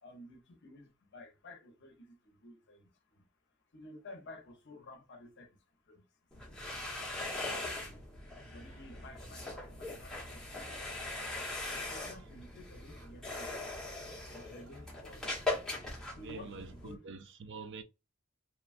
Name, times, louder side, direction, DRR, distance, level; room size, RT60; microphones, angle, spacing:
voice 1, 0.0-2.9 3.7-5.5 5.9-6.0 7.2-8.0 8.5-11.2 11.7-13.7 14.3-15.6 16.1-17.2, left 2 dB, 55° left, 0.7 m, -53 dB
sound 1, 6.3-16.9, left 2 dB, 5° left, 1.0 m, -40 dB
voice 2, 16.1-17.8, right 4 dB, 55° right, 0.5 m, -47 dB
2.9 x 2.2 x 2.5 m
head